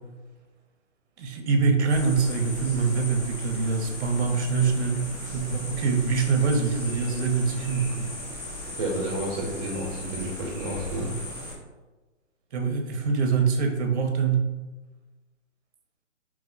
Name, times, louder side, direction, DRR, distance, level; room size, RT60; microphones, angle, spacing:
voice 1, 1.2-8.1 12.5-14.5, right 5 dB, 60° right, 4 dB, 0.7 m, -24 dB
sound 1, 1.9-11.5, left 1 dB, 5° left, 0.5 m, -38 dB
voice 2, 8.7-11.1, right 1 dB, 25° right, -2 dB, 0.8 m, -30 dB
3.0 x 2.0 x 3.8 m, 1.2 s
hypercardioid pair, 145°, 38 cm